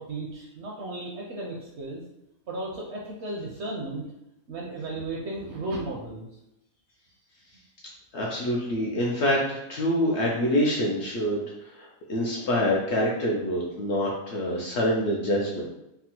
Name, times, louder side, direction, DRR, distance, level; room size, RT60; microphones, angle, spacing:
voice 1, 0.0-2.0 2.5-4.0 4.5-6.3, right 2 dB, 65° right, -2 dB, 0.7 m, -34 dB
voice 2, 8.1-15.6, equal, 65° left, -3 dB, 0.7 m, -26 dB
3.4 x 2.0 x 2.8 m, 0.86 s
omnidirectional pair, 1.5 m